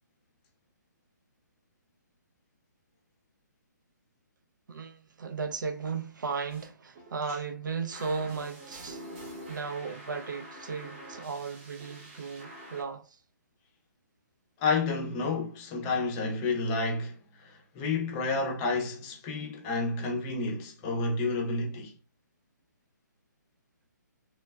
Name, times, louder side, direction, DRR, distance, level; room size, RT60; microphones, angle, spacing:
voice 1, 4.7-9.0 9.5-13.0, right 5 dB, 85° right, 0.5 m, -35 dB
sound 1, 6.5-6.7 6.9-7.2 7.9-12.8, right 1 dB, 35° right, 0.8 m, -46 dB
voice 2, 14.6-21.9, left 3 dB, 20° left, 0.5 m, -30 dB
3.0 x 2.2 x 2.2 m
hypercardioid pair, 155°, 10 cm